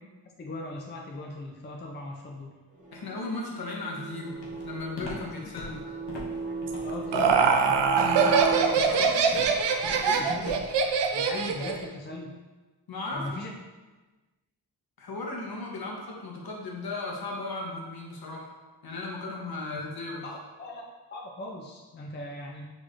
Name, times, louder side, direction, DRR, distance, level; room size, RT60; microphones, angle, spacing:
voice 1, 0.4-2.6 6.8-7.3 8.9-9.2 9.9-10.6 11.1-12.4 13.1-13.5 19.7-19.8 20.2-20.8 21.1-22.7, left 1 dB, 25° left, 0 dB, 0.4 m, -39 dB
sound 1, 2.7-8.7, right 3 dB, 20° right, 0.8 m, -37 dB
voice 2, 2.9-5.8 8.0-9.1 10.1-10.2 12.9-13.3 15.0-18.5 18.8-20.3, left 2 dB, 60° left, -1 dB, 0.9 m, -36 dB
Walk footsteps, 4.4-10.9, left 1 dB, 90° left, 1.1 m, -41 dB
Laughter, 6.7-11.8, right 5 dB, 75° right, 0.5 m, -23 dB
6.0 x 3.1 x 2.5 m, 1.3 s
wide cardioid pair, 150°, 42 cm